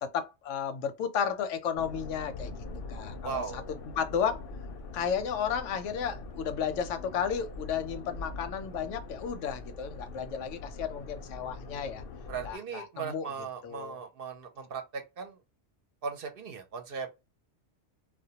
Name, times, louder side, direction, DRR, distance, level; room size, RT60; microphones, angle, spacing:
voice 1, 0.0-2.6 2.9-3.6 4.0-4.5 4.9-12.0 12.4-13.3 13.6-14.0, left 7 dB, 90° left, 0.9 m, -33 dB
sound 1, 1.8-12.6, left 3 dB, 60° left, 0.7 m, -43 dB
voice 2, 3.2-3.7 12.3-15.4 16.0-17.1, right 6 dB, 60° right, 0.7 m, -38 dB
2.2 x 2.1 x 2.7 m
omnidirectional pair, 1.2 m